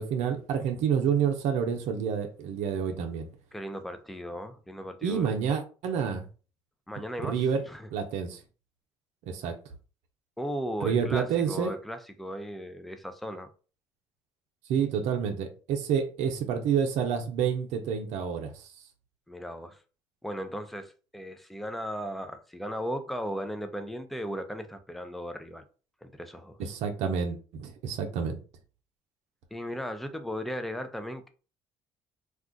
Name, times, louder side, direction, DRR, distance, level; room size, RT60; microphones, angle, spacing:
voice 1, 0.0-3.3 5.0-6.3 7.2-7.6 7.9-8.4 9.3-9.6 10.8-11.7 14.7-18.7 26.6-28.4, right 7 dB, 80° right, 0.6 m, -28 dB
voice 2, 3.5-5.4 6.9-7.4 7.7-7.9 10.4-13.5 19.3-19.8 20.2-25.6 26.0-26.6 29.5-31.3, equal, ahead, 0.5 m, -36 dB
2.4 x 2.3 x 3.8 m
supercardioid pair, 70°, 12 cm